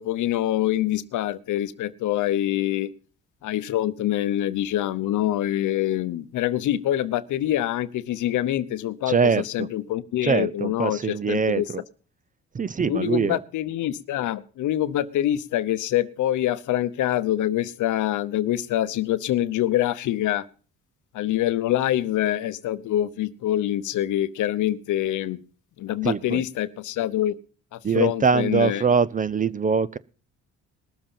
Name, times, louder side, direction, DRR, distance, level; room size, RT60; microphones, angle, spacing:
voice 1, 0.0-2.9 3.4-9.2 9.4-11.7 12.9-20.5 21.1-25.4 25.8-27.4 27.7-28.8, left 13 dB, 80° left, 14 dB, 0.8 m, -25 dB
voice 2, 9.1-9.7 10.2-11.8 12.5-13.4 26.0-26.4 27.8-30.0, right 5 dB, 25° right, 19 dB, 0.5 m, -23 dB
19.5 x 7.2 x 5.6 m, 0.39 s
cardioid pair, 90°, 30 cm